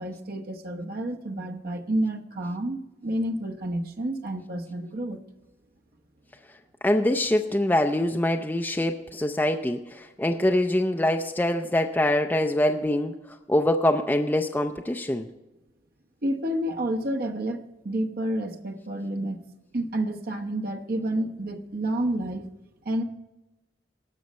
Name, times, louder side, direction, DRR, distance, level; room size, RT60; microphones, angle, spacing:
voice 1, 0.0-5.2 16.2-19.4 19.7-22.5 22.8-23.0, right 1 dB, 55° right, 3 dB, 1.0 m, -29 dB
voice 2, 6.8-15.3, left 1 dB, 10° left, 4 dB, 0.4 m, -24 dB
18.5 x 6.4 x 4.2 m, 1.0 s
head